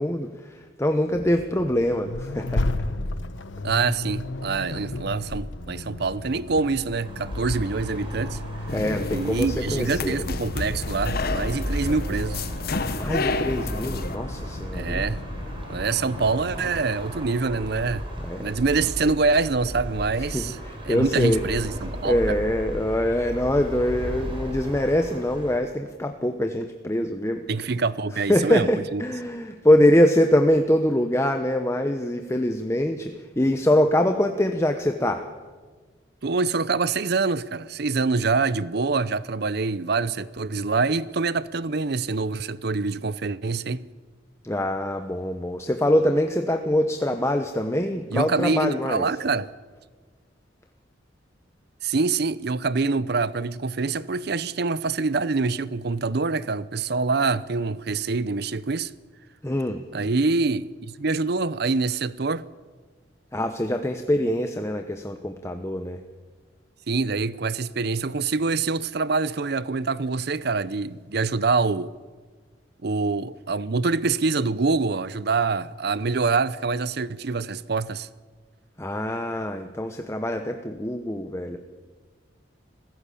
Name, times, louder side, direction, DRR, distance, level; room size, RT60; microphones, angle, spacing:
voice 1, 0.0-2.6 8.7-10.1 12.9-15.0 18.2-18.5 20.2-21.4 22.0-27.4 28.3-35.2 44.4-49.0 59.4-59.8 63.3-66.0 78.8-81.6, left 1 dB, 15° left, 0.9 m, -24 dB
Accelerating revving vroom, 1.1-16.8, left 2 dB, 90° left, 1.2 m, -34 dB
voice 2, 3.6-8.4 9.1-12.5 14.7-15.2 15.7-18.1 18.4-20.6 20.8-22.2 27.5-29.0 36.2-43.8 48.1-49.5 51.8-58.9 59.9-62.5 66.9-71.9 72.8-78.1, right 4 dB, 60° right, 0.6 m, -25 dB
sound 1, 7.0-25.6, equal, 30° right, 4.9 m, -35 dB
sound 2, 8.7-14.2, left 3 dB, 55° left, 1.2 m, -30 dB
26.5 x 15.5 x 8.5 m
head